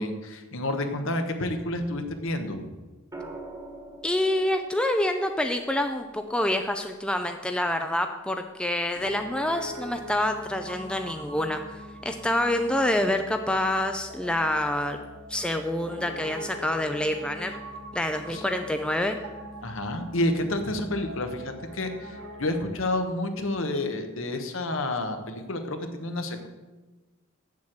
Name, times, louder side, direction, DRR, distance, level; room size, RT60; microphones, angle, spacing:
voice 1, 0.0-2.7 18.3-18.4 19.6-26.5, left 1 dB, 65° left, 6 dB, 1.1 m, -29 dB
sound 1, 3.1-7.2 8.9-9.3, right 2 dB, 15° right, 1.4 m, -45 dB
voice 2, 4.0-15.0 15.3-17.6 17.9-19.2, left 1 dB, 5° left, 5 dB, 0.4 m, -27 dB
Piano, 9.0-22.7, equal, 55° right, 1.6 m, -43 dB
7.6 x 7.3 x 7.7 m, 1.2 s
head